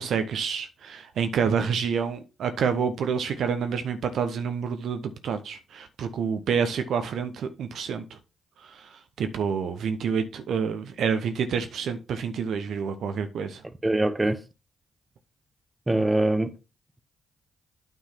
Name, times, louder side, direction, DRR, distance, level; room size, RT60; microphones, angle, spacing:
voice 1, 0.0-8.2 8.6-13.6, right 6 dB, 65° right, 0.8 m, -28 dB
voice 2, 13.8-14.4 15.9-16.5, right 1 dB, 20° right, 1.0 m, -23 dB
9.0 x 3.7 x 5.9 m
hypercardioid pair, 40°, 0 cm